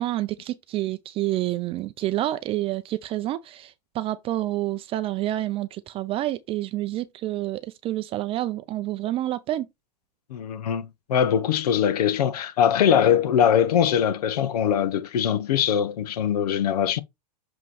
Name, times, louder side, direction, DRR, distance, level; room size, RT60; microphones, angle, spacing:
voice 1, 0.0-9.7, right 14 dB, 25° right, 0.5 m, -28 dB
voice 2, 10.3-17.0, left 9 dB, 70° left, 1.0 m, -22 dB
7.4 x 3.1 x 4.2 m
hypercardioid pair, 110°, 21 cm